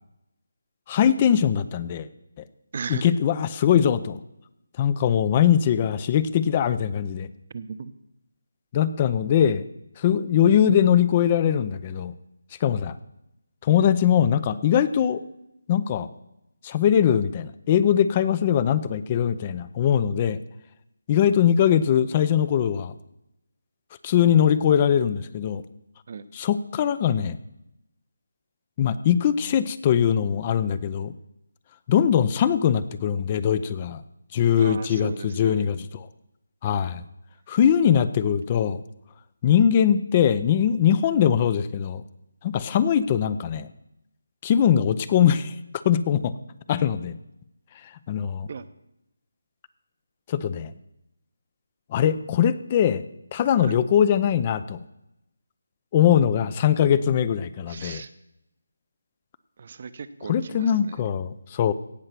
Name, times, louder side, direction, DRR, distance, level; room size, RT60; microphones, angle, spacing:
voice 1, 0.9-2.1 2.9-4.2 4.8-7.3 8.7-9.6 10.0-12.1 12.6-12.9 13.6-15.2 15.7-16.1 16.6-20.4 21.1-22.9 24.0-25.6 26.3-27.4 28.8-31.1 31.9-34.0 34.3-36.1 36.6-37.0 37.5-38.8 39.4-42.0 42.4-43.7 44.4-45.5 45.8-46.3 46.7-47.2 48.1-48.5 50.3-50.7 51.9-53.1 53.3-54.8 55.9-58.0 60.3-61.7, left 9 dB, 25° left, 15 dB, 0.5 m, -21 dB
voice 2, 2.7-3.2 7.5-7.9 10.2-10.3 26.1-26.2 34.6-35.6 48.5-48.6 53.6-53.8 57.7-58.1 59.6-61.0, right 5 dB, 40° right, 13 dB, 0.8 m, -37 dB
17.0 x 6.5 x 6.0 m, 0.86 s
figure-of-eight pair, 165°, 0 cm